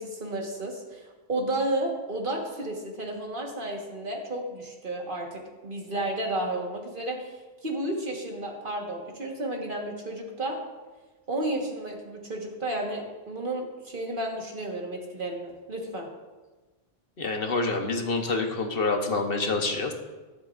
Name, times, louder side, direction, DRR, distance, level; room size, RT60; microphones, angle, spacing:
voice 1, 0.0-7.3 7.6-10.6 11.3-16.1, right 1 dB, 55° right, 0 dB, 1.7 m, -32 dB
voice 2, 17.2-19.9, left 3 dB, 65° left, 4 dB, 1.2 m, -27 dB
20.5 x 7.2 x 2.5 m, 1.2 s
omnidirectional pair, 1.1 m